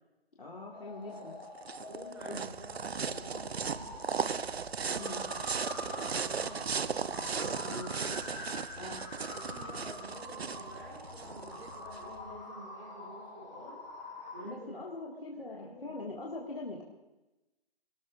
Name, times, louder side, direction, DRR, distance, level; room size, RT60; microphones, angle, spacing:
voice 1, 0.4-1.4 2.3-2.4 4.9-5.2 7.6-7.9 8.8-9.0 14.4-16.8, left 2 dB, 60° left, -4 dB, 2.1 m, -42 dB
sound 1, 0.7-14.5, left 3 dB, 45° left, 3.5 m, -46 dB
sound 2, 1.2-12.0, right 6 dB, 75° right, 0.6 m, -36 dB
voice 2, 1.9-4.3 4.8-5.5 5.8-8.2 9.1-13.8 14.3-15.0 15.3-15.9, equal, 25° right, -11 dB, 5.9 m, -50 dB
sound 3, 2.4-12.4, left 3 dB, 75° left, 2.2 m, -57 dB
24.0 x 18.0 x 2.5 m, 1.0 s
figure-of-eight pair, 180°, 32 cm